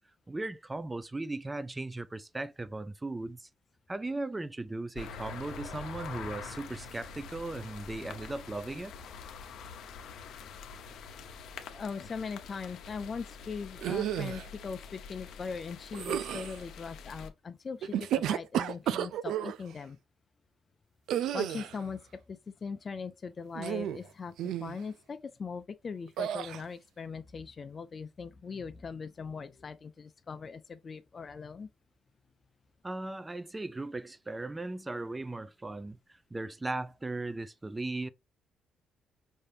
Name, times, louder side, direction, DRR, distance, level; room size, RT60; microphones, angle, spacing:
voice 1, 0.3-3.5 3.9-8.9 32.8-36.0 36.3-38.1, right 2 dB, 20° right, 0.5 m, -37 dB
sound 1, 5.0-17.3, left 5 dB, 75° left, 0.7 m, -45 dB
voice 2, 11.7-20.0 21.3-22.0 22.3-31.7, left 5 dB, 40° left, 0.5 m, -40 dB
sound 2, 13.8-14.5 15.9-16.6 17.8-19.6 21.1-21.8 23.6-24.1 24.4-24.8 26.2-26.6, right 10 dB, 80° right, 0.3 m, -32 dB
5.3 x 2.7 x 3.3 m
cardioid pair, 90°, 0 cm